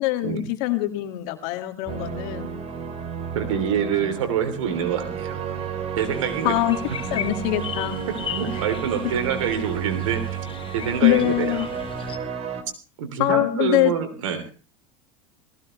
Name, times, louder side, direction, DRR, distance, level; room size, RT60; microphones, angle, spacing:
voice 1, 0.0-2.5 6.4-6.8 7.1-8.0 11.0-11.7 13.2-13.9, left 16 dB, 65° left, 7 dB, 2.0 m, -23 dB
documatry music sample by kris, 1.9-12.6, right 7 dB, 40° right, 3.0 m, -32 dB
voice 2, 3.3-5.4 6.0-6.5 6.9-7.0 8.3-10.2 10.7-11.6 13.0-14.5, right 8 dB, 80° right, 7 dB, 3.2 m, -26 dB
sound 1, 6.0-12.2, left 9 dB, 35° left, 1.3 m, -37 dB
18.5 x 16.0 x 3.2 m, 0.35 s
hypercardioid pair, 95°, 16 cm